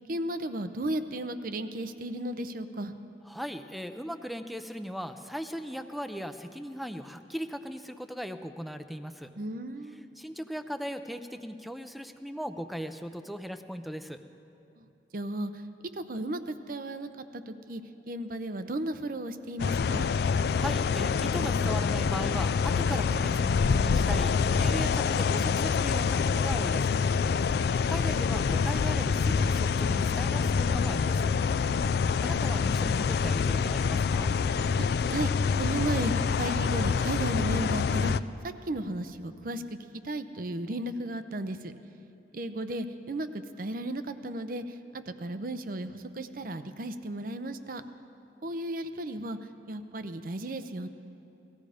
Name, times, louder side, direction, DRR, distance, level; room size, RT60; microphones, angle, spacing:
voice 1, 0.1-2.9 9.4-10.0 14.8-14.9 15.1-15.5 15.9-17.8 18.1-20.1 35.1-35.3 35.6-38.1 38.7-39.8 40.0-41.7 42.3-44.6 44.9-47.8 48.4-49.4 49.7-50.9, right 1 dB, 50° right, 10 dB, 0.7 m, -35 dB
voice 2, 3.3-9.3 10.2-14.2 20.6-27.0 27.9-31.3 32.2-34.3, equal, ahead, 8 dB, 0.5 m, -38 dB
sound 1, 19.6-38.2, left 5 dB, 60° left, 0.3 m, -26 dB
18.5 x 14.5 x 5.0 m, 2.9 s
head